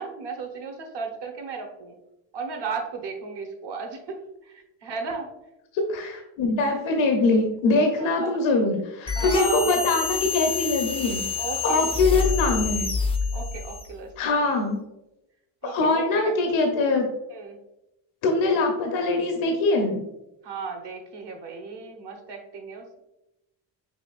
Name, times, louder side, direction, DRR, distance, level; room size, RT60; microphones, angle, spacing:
voice 1, 0.0-2.0 2.3-4.2 4.4-5.3 8.0-8.4 9.1-9.7 11.4-12.7 13.3-14.1 15.6-16.3 17.3-17.6 20.4-23.0, right 5 dB, 55° right, 3 dB, 1.1 m, -35 dB
voice 2, 5.7-11.2 11.6-12.9 14.2-14.8 15.6-17.1 18.2-20.0, left 3 dB, 70° left, 3 dB, 0.8 m, -23 dB
sound 1, 9.1-13.9, left 4 dB, 10° left, 0.4 m, -27 dB
5.6 x 2.9 x 2.4 m, 0.91 s
supercardioid pair, 65°, 49 cm